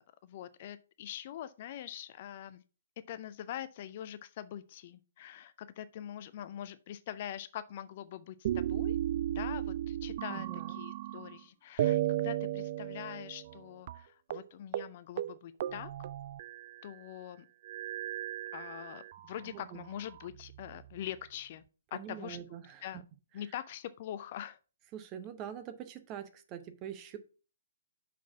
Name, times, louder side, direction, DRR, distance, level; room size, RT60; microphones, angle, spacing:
voice 1, 0.0-2.6 3.1-9.0 9.3-15.9 16.8-17.5 18.5-21.6 21.9-22.4 22.8-23.0 23.3-24.6, left 11 dB, 40° left, 0.5 m, -43 dB
sound 1, 8.4-11.4 11.8-13.6 13.9-14.0 14.3-14.5 14.7-14.9 15.2-16.9 17.6-19.2 19.9-20.9, right 12 dB, 40° right, 0.3 m, -35 dB
voice 2, 10.3-10.8 19.4-19.9 21.9-22.9 24.9-27.2, right 9 dB, 25° right, 0.9 m, -44 dB
6.1 x 4.2 x 6.0 m
figure-of-eight pair, 125°, 0 cm